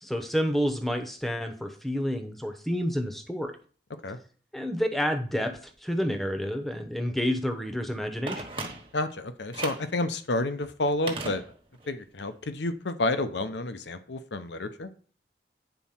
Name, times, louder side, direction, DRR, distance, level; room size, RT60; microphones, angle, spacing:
voice 1, 0.0-3.5 4.5-8.5, equal, ahead, 6 dB, 0.8 m, -29 dB
Telephone, 8.3-9.1 9.5-9.9 11.1-11.9 12.2-12.3, right 3 dB, 30° right, 1.2 m, -37 dB
voice 2, 8.9-11.4 11.9-14.9, left 2 dB, 85° left, 10 dB, 0.7 m, -30 dB
9.2 x 4.2 x 5.7 m, 0.43 s
head